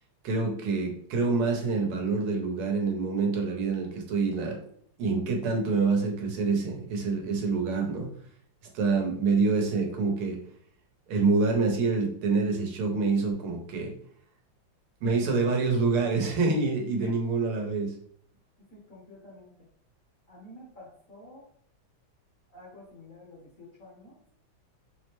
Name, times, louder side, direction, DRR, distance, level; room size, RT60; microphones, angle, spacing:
voice 1, 0.2-4.6 5.0-8.1 8.7-10.4 11.1-13.9 15.0-17.9, right 4 dB, 85° right, 2 dB, 1.7 m, -26 dB
voice 2, 18.7-19.5 20.3-21.5 22.5-24.2, equal, 55° left, -4 dB, 1.0 m, -48 dB
4.7 x 2.1 x 3.0 m, 0.62 s
omnidirectional pair, 2.4 m